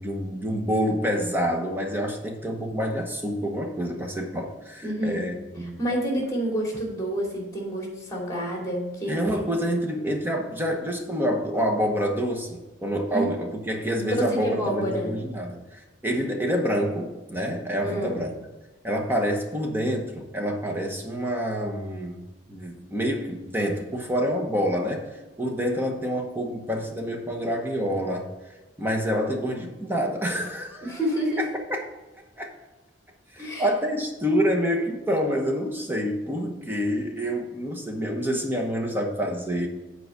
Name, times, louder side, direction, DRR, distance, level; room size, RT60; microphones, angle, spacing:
voice 1, 0.0-5.8 9.1-18.3 18.8-25.1 25.4-28.3 28.8-31.0 31.4-31.5 31.7-31.8 32.4-32.5 33.3-39.7, equal, 10° right, 1 dB, 1.0 m, -27 dB
voice 2, 4.8-5.2 5.6-9.6 13.1-13.3 14.0-14.1 14.3-15.1 17.8-18.1 30.8-31.4 33.4-33.7, right 1 dB, 20° left, -2 dB, 2.7 m, -29 dB
7.7 x 4.8 x 6.3 m, 1.1 s
head